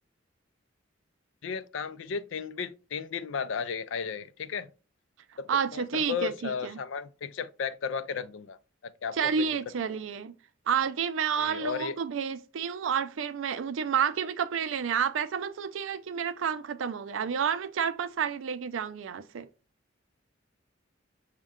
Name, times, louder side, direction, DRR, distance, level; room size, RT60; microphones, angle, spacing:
voice 1, 1.4-4.7 5.4-8.6 8.8-9.5 11.4-12.0, left 6 dB, 75° left, 0.4 m, -34 dB
voice 2, 5.5-6.8 9.1-10.3 10.7-19.5, right 7 dB, 80° right, 0.4 m, -30 dB
6.2 x 2.2 x 3.6 m
head